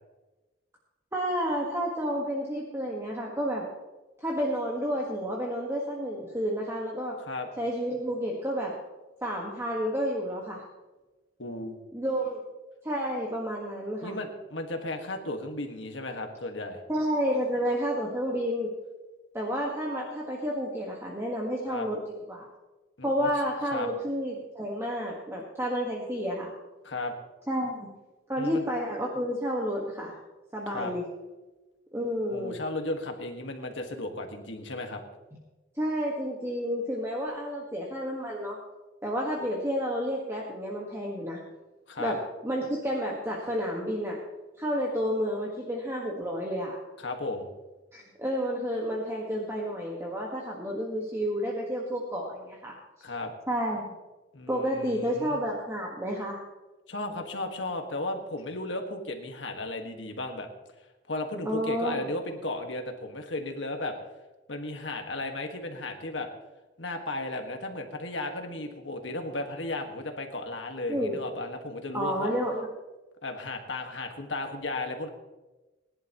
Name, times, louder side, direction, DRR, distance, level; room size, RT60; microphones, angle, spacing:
voice 1, 1.1-3.7 4.2-7.2 7.6-8.7 9.2-10.6 11.9-12.4 12.8-14.2 16.9-18.7 19.3-22.0 22.3-22.5 23.0-26.5 27.5-27.9 28.3-30.1 30.5-31.0 31.9-32.6 35.7-38.6 39.0-41.4 42.0-42.2 42.4-44.2 44.6-46.8 47.9-52.7 53.5-53.9 54.5-56.4 61.4-62.0 70.9-71.2 71.9-72.7, equal, 15° right, -2 dB, 1.6 m, -30 dB
voice 2, 11.4-11.8 14.0-16.8 21.7-21.9 23.0-23.3 23.7-23.9 26.8-27.1 28.4-28.7 30.7-30.9 32.3-35.0 41.9-42.1 47.0-47.5 53.0-53.3 54.3-55.4 56.9-60.5 61.1-64.0 64.5-66.3 66.8-72.3 73.2-75.1, left 2 dB, 85° left, 4 dB, 1.8 m, -35 dB
21.0 x 11.0 x 3.1 m, 1.1 s
head